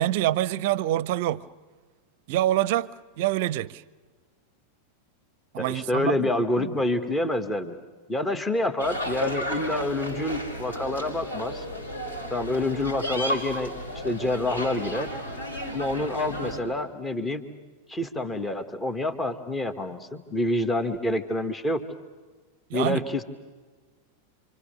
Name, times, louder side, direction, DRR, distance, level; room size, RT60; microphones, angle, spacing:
voice 1, 0.0-1.5 2.3-3.8 5.5-6.3 6.6-6.7 22.7-23.2, right 14 dB, 50° right, 0.7 m, -26 dB
voice 2, 5.6-7.8 8.1-11.6 12.3-15.1 15.7-17.4 17.9-21.8 22.7-23.2, left 1 dB, 15° left, 1.8 m, -27 dB
sound 1, 8.8-16.6, equal, 80° left, 5.7 m, -33 dB
28.0 x 26.0 x 6.8 m
figure-of-eight pair, 90°, 0 cm